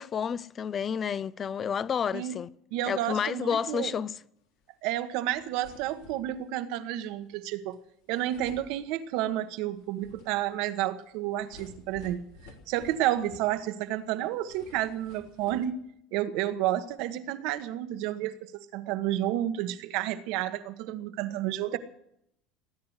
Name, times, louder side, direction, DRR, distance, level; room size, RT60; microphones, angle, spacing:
voice 1, 0.0-2.5 2.9-4.2, left 7 dB, 30° left, 0.5 m, -30 dB
voice 2, 2.7-3.9 4.8-7.8 8.1-15.8 16.1-21.8, right 13 dB, 70° right, 1.3 m, -31 dB
sound 1, 5.0-5.1 5.3-6.5 7.7-7.8 8.1-9.3 9.7-13.9 14.2-15.7, left 3 dB, 85° left, 3.3 m, -53 dB
18.5 x 9.6 x 8.0 m
supercardioid pair, 120°, 0 cm